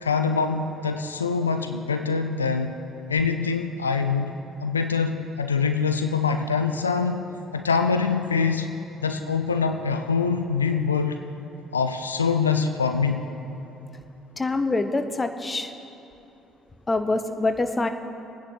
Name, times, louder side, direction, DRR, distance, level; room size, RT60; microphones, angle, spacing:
voice 1, 0.0-2.8 3.1-4.3 4.6-7.2 7.5-8.7 9.0-11.2 11.7-13.2, left 5 dB, 85° left, 7 dB, 0.4 m, -24 dB
voice 2, 14.4-15.7 16.9-17.9, left 2 dB, 20° left, 8 dB, 0.9 m, -25 dB
24.0 x 9.8 x 3.9 m, 2.8 s
figure-of-eight pair, 50°, 0 cm